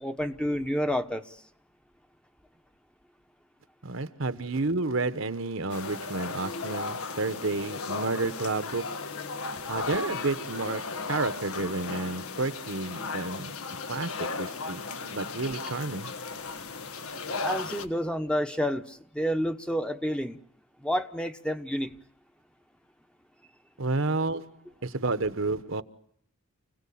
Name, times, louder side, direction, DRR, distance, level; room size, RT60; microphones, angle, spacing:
voice 1, 0.0-1.4 17.4-20.4 20.8-21.9, equal, 5° left, 1.0 m, -29 dB
voice 2, 3.8-9.0 9.7-13.6 13.9-14.8 15.1-16.1 23.8-25.8, right 3 dB, 65° right, 1.1 m, -31 dB
sound 1, 5.7-17.9, left 4 dB, 85° left, 1.5 m, -35 dB
29.5 x 17.5 x 8.6 m
head